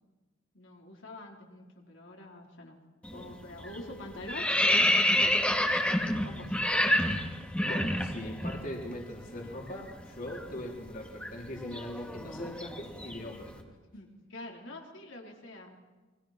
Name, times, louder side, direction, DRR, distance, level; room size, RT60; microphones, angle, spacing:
voice 1, 0.5-2.8 3.1-5.4 6.2-6.7 13.9-15.8, left 1 dB, 70° left, 0 dB, 4.5 m, -45 dB
sound 1, 3.0-3.3 3.6-8.6 8.9-9.0 9.4-13.4, left 1 dB, 5° left, 2.2 m, -28 dB
voice 2, 7.6-13.8, left 1 dB, 45° left, -1 dB, 3.9 m, -40 dB
30.0 x 23.0 x 6.1 m, 1.3 s
head